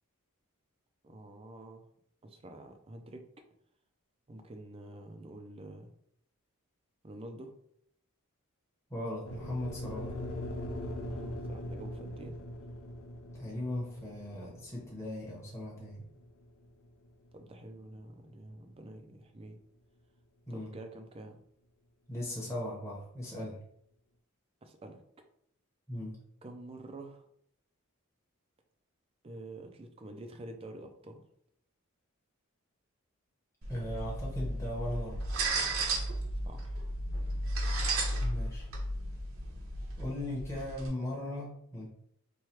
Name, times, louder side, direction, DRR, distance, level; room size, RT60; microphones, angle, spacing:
voice 1, 1.0-1.9 2.2-3.2 4.3-5.9 7.0-7.5 11.1-12.4 17.3-19.6 20.5-21.4 24.6-25.0 26.4-27.3 29.2-31.2 36.5-36.8, right 1 dB, 25° right, 5 dB, 0.4 m, -47 dB
voice 2, 8.9-10.1 13.3-16.0 20.5-20.7 22.1-23.6 25.9-26.2 33.7-35.2 38.2-38.7 40.0-41.9, left 1 dB, 15° left, -5 dB, 1.0 m, -38 dB
sound 1, 9.3-17.5, left 1 dB, 65° left, 0.5 m, -41 dB
sound 2, 33.6-40.9, right 2 dB, 70° right, 0.8 m, -34 dB
3.2 x 2.3 x 4.3 m, 0.69 s
head